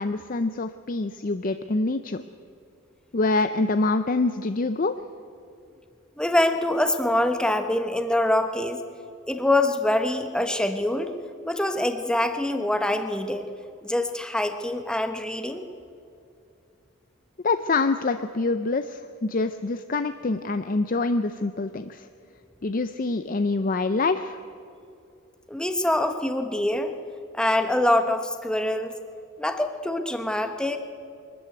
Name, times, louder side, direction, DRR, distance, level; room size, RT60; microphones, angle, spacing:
voice 1, 0.0-2.2 3.1-5.0 17.4-22.1 22.6-24.4, left 3 dB, 40° left, 9 dB, 0.5 m, -25 dB
voice 2, 6.2-8.8 9.3-11.1 11.4-13.5 13.8-15.7 25.5-26.9 27.3-28.9 29.4-30.8, left 1 dB, 5° left, 6 dB, 1.0 m, -24 dB
23.0 x 13.5 x 9.5 m, 2.6 s
head